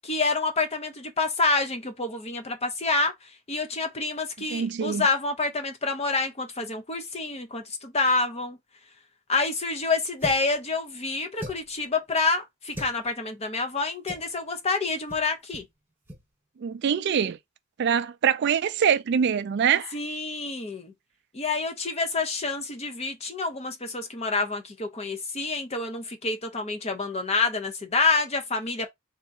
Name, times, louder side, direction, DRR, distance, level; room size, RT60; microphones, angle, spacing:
voice 1, 0.0-8.6 9.3-15.6 19.9-20.9 21.3-28.9, left 3 dB, 30° left, 0.6 m, -28 dB
voice 2, 4.5-5.0 16.6-17.4 17.8-19.9, right 7 dB, 50° right, 0.3 m, -24 dB
sound 1, 10.2-10.6 11.4-11.8 12.7-13.0 14.1-14.3 15.1-15.3 15.5-15.7 16.0-16.2, equal, 10° right, 1.0 m, -39 dB
2.9 x 2.5 x 3.5 m
head